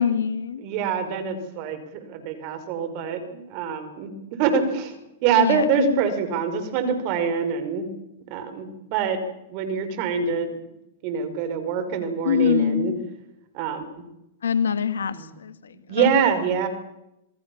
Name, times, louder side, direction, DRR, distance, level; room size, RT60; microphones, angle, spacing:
voice 1, 0.0-0.6 5.4-6.0 12.2-13.0 14.4-15.5 16.0-16.2, left 8 dB, 85° left, 12 dB, 2.0 m, -24 dB
voice 2, 0.6-4.1 4.4-5.0 5.2-7.9 8.3-9.2 9.5-10.5 11.0-12.9 13.5-14.0 15.1-15.3 15.7-16.7, right 6 dB, 50° right, 9 dB, 5.3 m, -25 dB
27.5 x 20.5 x 7.2 m, 0.89 s
hypercardioid pair, 115°, 0 cm